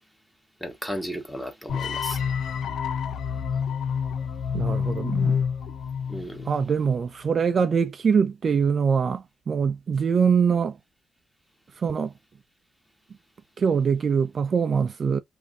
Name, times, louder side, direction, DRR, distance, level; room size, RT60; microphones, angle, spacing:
voice 1, 0.6-2.2 6.1-6.5, equal, ahead, 1.4 m, -34 dB
sound 1, 1.7-6.8, left 7 dB, 75° left, 0.7 m, -28 dB
voice 2, 4.5-5.3 6.4-10.8 11.8-12.1 13.6-15.2, right 6 dB, 50° right, 0.5 m, -23 dB
5.2 x 2.8 x 2.3 m
cardioid pair, 105°, 0 cm